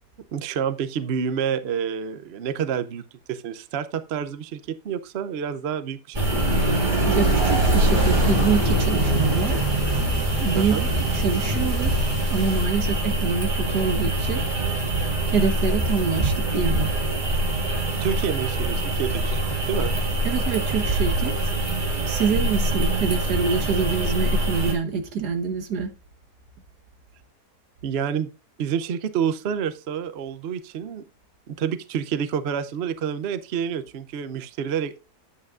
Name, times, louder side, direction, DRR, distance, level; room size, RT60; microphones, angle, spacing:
voice 1, 0.3-6.2 6.5-6.6 10.6-10.8 18.0-19.4 19.7-19.9 27.8-28.3 28.6-31.0 31.5-35.0, right 8 dB, 55° right, 0.8 m, -28 dB
sound 1, 6.1-24.7, right 1 dB, 30° right, 2.2 m, -23 dB
voice 2, 7.1-9.7 10.4-10.8 11.1-14.4 15.3-16.9 20.2-21.3 22.0-25.9, right 5 dB, 80° right, 1.8 m, -26 dB
sound 2, 7.2-12.7, left 1 dB, 10° left, 3.3 m, -30 dB
9.7 x 8.4 x 2.5 m
omnidirectional pair, 1.7 m